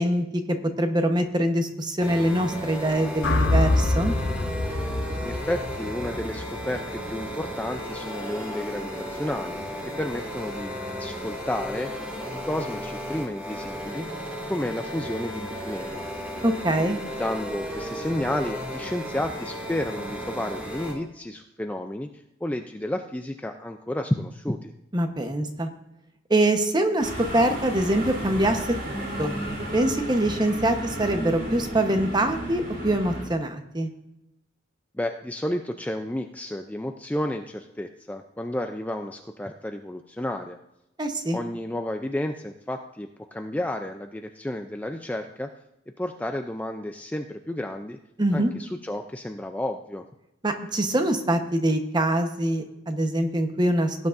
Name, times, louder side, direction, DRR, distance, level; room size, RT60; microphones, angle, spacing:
voice 1, 0.0-4.1 16.4-17.0 24.9-25.7 26.3-28.7 29.2-29.3 29.7-33.9 41.0-41.4 48.2-48.5 50.4-54.0, right 1 dB, 25° right, 6 dB, 1.0 m, -24 dB
sound 1, 2.0-20.9, equal, 5° right, 2.1 m, -35 dB
sound 2, 3.2-7.4, left 2 dB, 70° left, 0.8 m, -26 dB
voice 2, 5.2-9.6 10.0-14.1 14.5-16.0 16.7-22.1 22.4-24.7 34.9-40.6 41.3-45.5 46.0-48.0 48.3-50.1, left 1 dB, 10° left, 5 dB, 0.4 m, -31 dB
sound 3, 27.0-33.3, right 1 dB, 55° right, 3.2 m, -33 dB
18.0 x 9.5 x 2.6 m, 0.88 s
head